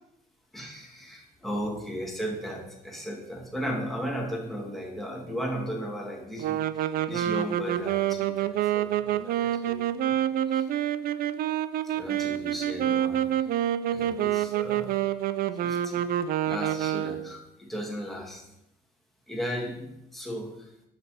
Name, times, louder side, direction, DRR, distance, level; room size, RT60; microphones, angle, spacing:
voice 1, 0.5-10.2 10.5-10.7 11.8-13.4 13.9-15.0 15.5-16.0 16.4-18.5 19.3-20.7, equal, ahead, -1 dB, 1.6 m, -36 dB
sound 1, 6.4-17.4, right 11 dB, 60° right, 0.4 m, -27 dB
6.3 x 5.4 x 4.3 m, 0.85 s
cardioid pair, 110°, 17 cm